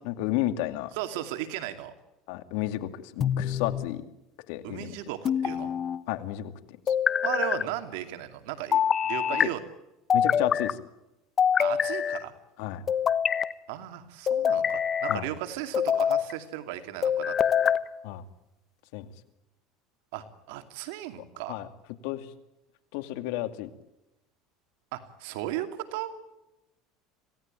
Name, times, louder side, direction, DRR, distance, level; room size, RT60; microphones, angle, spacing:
voice 1, 0.0-0.9 2.3-4.0 4.5-5.0 6.1-6.5 6.9-7.0 9.4-9.5 10.1-10.8 12.6-12.8 15.1-15.3 18.0-18.2 18.9-19.1 21.5-21.7 22.0-22.3 22.9-23.7, left 14 dB, 75° left, 9 dB, 2.5 m, -31 dB
voice 2, 0.9-1.9 4.6-5.7 7.2-9.6 11.6-12.3 13.7-17.7 20.1-21.6 24.9-26.1, right 13 dB, 80° right, 8 dB, 2.6 m, -36 dB
sound 1, 3.2-3.9 5.2-6.0 6.9-7.6 8.7-9.5 10.1-10.7 11.4-12.2 12.9-13.5 14.3-15.2 15.7-16.3 17.0-17.8, left 8 dB, 30° left, 1.0 m, -25 dB
26.5 x 17.5 x 8.9 m, 0.93 s
cardioid pair, 140°, 0 cm